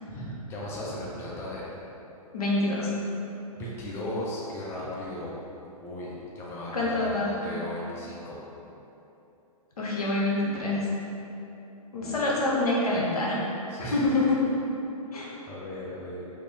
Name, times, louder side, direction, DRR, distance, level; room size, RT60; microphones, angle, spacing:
voice 1, 0.1-1.6 3.6-5.4 5.8-8.4 12.0-12.2 13.7-14.3 15.5-16.3, left 1 dB, 15° left, -6 dB, 0.5 m, -36 dB
voice 2, 2.3-2.9 6.7-7.3 9.8-10.9 11.9-13.4 13.8-14.4 15.1-15.3, left 2 dB, 85° left, -4 dB, 0.8 m, -26 dB
2.9 x 2.5 x 3.3 m, 2.9 s
hypercardioid pair, 125°, 19 cm